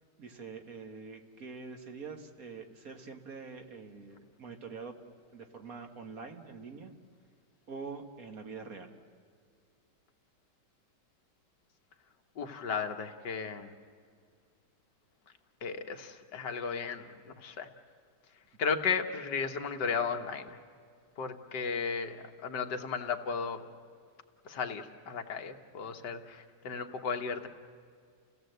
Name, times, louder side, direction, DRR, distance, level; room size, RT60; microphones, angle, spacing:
voice 1, 0.2-5.0 5.3-6.9 7.7-8.9, right 5 dB, 55° right, 5 dB, 1.8 m, -45 dB
voice 2, 12.4-13.7 15.6-17.7 18.6-20.6 21.2-22.2 22.4-23.6 24.4-27.5, left 5 dB, 75° left, 6 dB, 1.8 m, -35 dB
30.0 x 16.5 x 7.9 m, 2.1 s
omnidirectional pair, 1.9 m